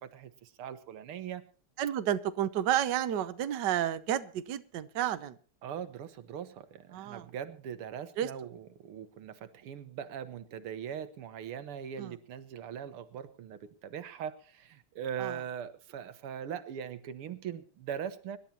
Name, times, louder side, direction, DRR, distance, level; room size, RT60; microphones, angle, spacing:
voice 1, 0.1-1.4 5.6-18.4, right 8 dB, 85° right, 12 dB, 2.1 m, -41 dB
voice 2, 1.8-5.4 6.9-7.3 8.2-8.3 12.0-12.1 15.2-15.3, right 11 dB, 60° right, 11 dB, 1.4 m, -31 dB
25.0 x 12.0 x 2.9 m, 0.39 s
omnidirectional pair, 2.3 m